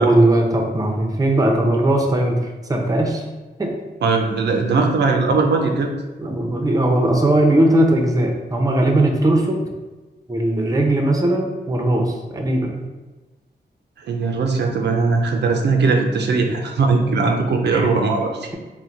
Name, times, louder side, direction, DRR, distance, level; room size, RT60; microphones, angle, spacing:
voice 1, 0.0-2.4 2.7-3.2 3.6-3.7 6.2-9.6 10.3-12.8 17.7-17.9, right 1 dB, 20° right, 2 dB, 0.6 m, -18 dB
voice 2, 4.0-5.9 14.1-18.5, right 4 dB, 75° right, 2 dB, 0.6 m, -19 dB
3.9 x 2.2 x 4.4 m, 1.2 s
wide cardioid pair, 95°, 18 cm